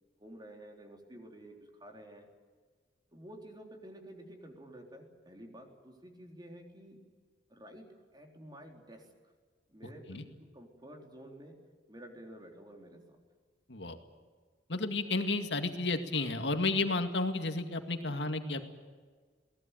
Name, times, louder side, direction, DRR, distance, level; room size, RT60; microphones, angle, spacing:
voice 1, 0.2-2.3 3.1-7.0 7.5-7.9 8.1-9.1 9.7-11.6 11.9-13.2 18.1-18.2, right 1 dB, 25° right, 2 dB, 3.8 m, -51 dB
voice 2, 14.7-18.7, left 3 dB, 85° left, 6 dB, 2.2 m, -32 dB
22.5 x 18.5 x 9.2 m, 1.5 s
head